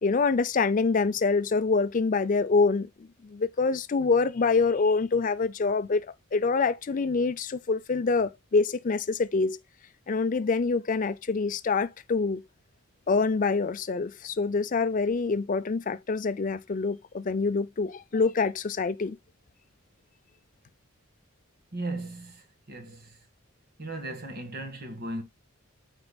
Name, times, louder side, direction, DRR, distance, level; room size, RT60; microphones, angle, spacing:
voice 1, 0.0-2.9 3.2-6.1 6.3-9.6 10.1-12.4 13.1-19.2, left 4 dB, 40° left, 0.4 m, -25 dB
voice 2, 21.7-23.2 23.8-25.2, right 2 dB, 45° right, 1.7 m, -37 dB
12.5 x 4.5 x 2.3 m
head